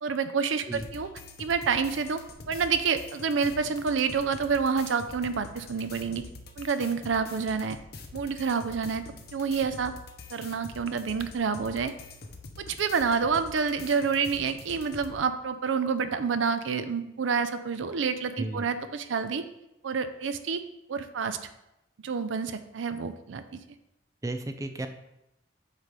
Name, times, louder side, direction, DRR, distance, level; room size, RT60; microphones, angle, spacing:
voice 1, 0.0-1.1 1.4-2.2 2.5-6.2 6.6-7.8 8.1-9.0 9.3-9.9 10.3-11.9 12.6-19.4 19.8-20.6 20.9-21.4 22.0-23.4, right 5 dB, 90° right, 10 dB, 0.5 m, -28 dB
sound 1, 0.7-15.1, left 3 dB, 55° left, 0.7 m, -45 dB
voice 2, 18.4-18.7 24.2-24.9, right 2 dB, 15° right, 7 dB, 0.4 m, -33 dB
8.2 x 3.2 x 5.2 m, 0.89 s
head